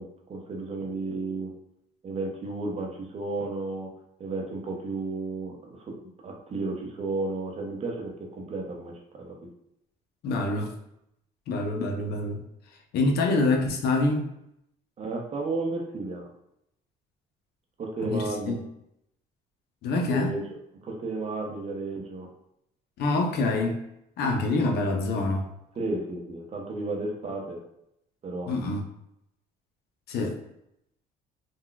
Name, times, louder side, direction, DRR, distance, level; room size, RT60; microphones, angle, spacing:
voice 1, 0.0-1.5 2.0-3.9 4.2-9.4 13.0-13.1 15.0-16.2 17.8-18.6 20.0-20.4 20.8-22.3 25.8-27.6 28.2-28.5, right 3 dB, 40° right, 1 dB, 0.7 m, -33 dB
voice 2, 10.2-10.7 11.5-12.4 12.9-14.3 18.0-18.6 19.8-20.4 23.0-23.8 24.2-25.4 28.5-28.8 30.1-30.4, left 2 dB, 70° left, 3 dB, 0.6 m, -26 dB
3.8 x 2.3 x 2.2 m, 0.80 s
cardioid pair, 110°, 17 cm